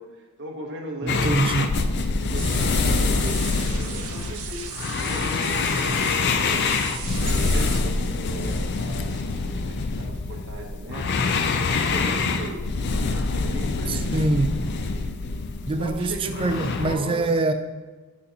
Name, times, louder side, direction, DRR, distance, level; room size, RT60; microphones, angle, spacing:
voice 1, 0.0-1.4 2.2-4.8 5.0-9.4 9.7-12.6 12.9-14.3 15.7-17.3, right 1 dB, 55° right, 1 dB, 0.9 m, -38 dB
voice 2, 1.0-1.8 13.9-14.6 15.7-17.5, right 2 dB, 25° right, 7 dB, 0.3 m, -24 dB
sound 1, 1.1-16.9, left 3 dB, 50° left, 0.4 m, -25 dB
sound 2, 2.4-7.8, right 7 dB, 80° right, 0.7 m, -37 dB
6.4 x 5.3 x 2.8 m, 1.3 s
head